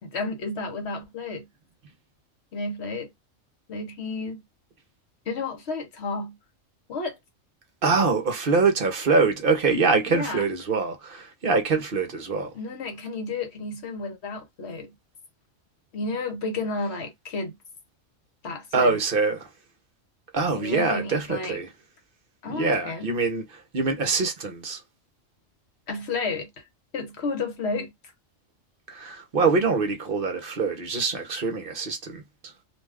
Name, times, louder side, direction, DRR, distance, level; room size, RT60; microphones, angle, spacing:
voice 1, 0.0-1.5 2.5-3.1 3.7-4.4 5.3-6.4 6.9-7.2 10.1-10.4 12.5-14.9 15.9-17.6 18.4-19.0 20.5-21.6 22.4-23.1 25.9-26.6 26.9-27.9, left 3 dB, 60° left, 1.1 m, -32 dB
voice 2, 7.8-12.5 18.7-19.5 20.3-21.7 22.5-24.8 28.9-32.5, right 4 dB, 50° right, 0.8 m, -24 dB
2.6 x 2.3 x 3.3 m
omnidirectional pair, 1.3 m